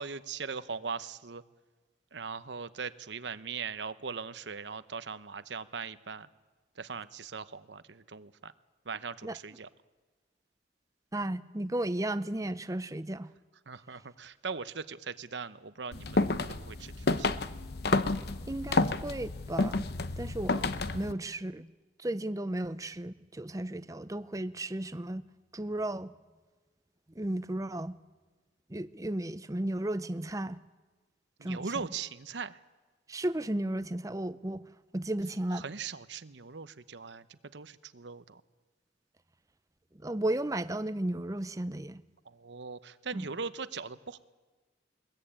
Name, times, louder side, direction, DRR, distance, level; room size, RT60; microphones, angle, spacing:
voice 1, 0.0-1.4 2.1-6.3 6.8-8.5 8.9-9.7 13.7-17.4 31.4-32.6 35.5-38.4 42.3-44.2, right 5 dB, 70° right, 0.9 m, -40 dB
voice 2, 11.1-13.3 18.4-19.9 20.2-21.7 22.0-25.2 25.5-26.1 27.2-28.0 28.7-30.6 31.4-31.7 33.1-34.7 34.9-35.7 40.0-42.0 43.1-43.3, right 1 dB, 20° right, 0.7 m, -34 dB
sound 1, 15.9-21.1, left 3 dB, 55° left, 0.9 m, -30 dB
21.5 x 21.5 x 8.9 m
head